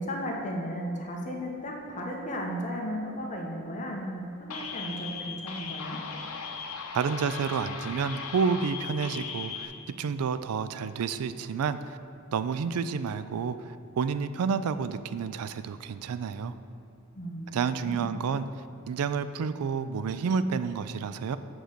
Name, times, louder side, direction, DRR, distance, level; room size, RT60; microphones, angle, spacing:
voice 1, 0.0-6.0 17.1-18.1, equal, 35° left, -1 dB, 1.1 m, -35 dB
sound 1, 4.5-9.7, left 5 dB, 85° left, 0.7 m, -38 dB
voice 2, 6.9-9.7 10.0-12.0 12.3-16.5 17.5-18.5 18.9-21.4, right 6 dB, 85° right, 13 dB, 0.4 m, -30 dB
7.8 x 3.8 x 6.6 m, 2.5 s
head